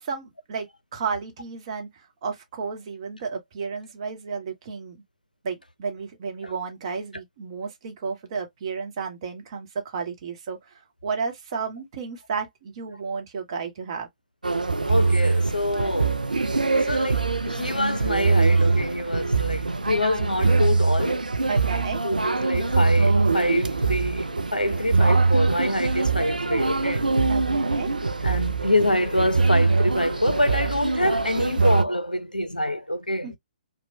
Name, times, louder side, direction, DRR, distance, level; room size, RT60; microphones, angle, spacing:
voice 1, 0.0-5.0 5.4-10.7 11.0-14.1 21.5-22.0 27.3-27.9 33.2-33.4, right 5 dB, 40° right, 0.8 m, -32 dB
sound 1, 14.4-31.8, right 3 dB, 80° right, 0.4 m, -23 dB
voice 2, 14.9-16.3 16.7-21.3 22.0-27.1 28.2-33.3, left 1 dB, 90° left, 0.4 m, -26 dB
2.9 x 2.0 x 2.6 m
figure-of-eight pair, 125°, 4 cm